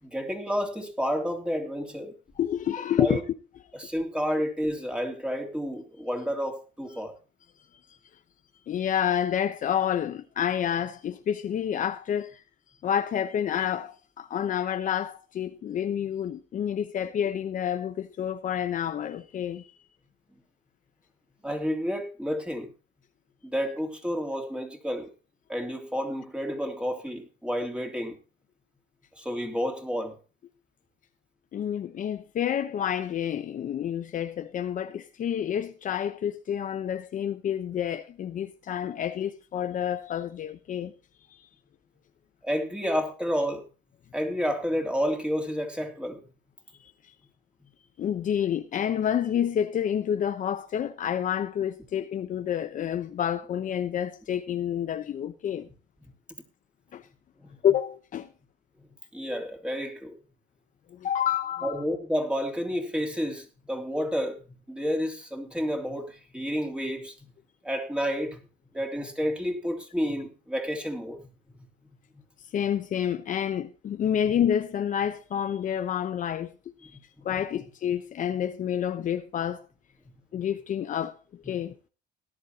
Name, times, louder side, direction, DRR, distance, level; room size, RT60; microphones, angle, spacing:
voice 1, 0.0-2.1 3.0-3.2 3.7-7.1 21.4-22.7 23.4-25.1 25.5-28.2 29.1-30.2 42.4-43.6 44.1-46.2 57.4-57.5 59.1-60.1 61.6-64.4 64.7-67.3 67.6-68.4 68.7-71.2 74.0-74.1 77.2-77.3 77.5-77.6, equal, 5° right, 3.1 m, -30 dB
voice 2, 2.4-3.2 3.8-3.9 8.7-12.4 12.8-19.6 31.5-40.9 41.3-41.4 48.0-55.7 56.9-57.0 57.6-58.3 60.9-61.8 72.5-76.5 76.8-77.0 77.2-79.6 80.3-81.2 81.5-81.7, left 9 dB, 50° left, 0.9 m, -29 dB
18.5 x 11.0 x 2.9 m
cardioid pair, 110°, 17 cm